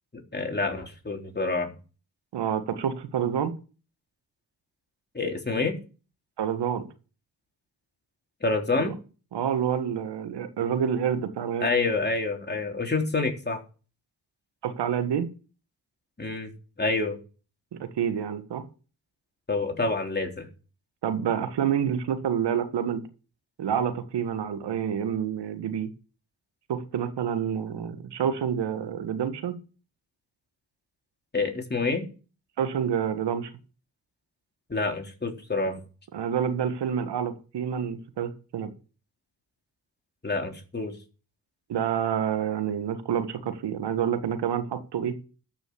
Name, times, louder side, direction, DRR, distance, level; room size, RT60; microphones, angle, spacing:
voice 1, 0.3-1.7 5.1-5.8 8.4-8.9 11.6-13.6 16.2-16.5 16.8-17.2 19.5-20.5 31.3-32.1 34.7-35.8 40.2-41.0, left 3 dB, 25° left, 2 dB, 3.6 m, -27 dB
voice 2, 2.3-3.5 6.4-6.8 8.8-8.9 9.3-11.7 14.6-15.3 17.7-18.6 21.0-23.0 23.6-25.9 26.7-29.6 32.6-33.5 36.1-38.7 41.7-45.1, right 8 dB, 70° right, 10 dB, 1.7 m, -28 dB
13.0 x 6.2 x 7.0 m, 0.36 s
supercardioid pair, 45°, 42 cm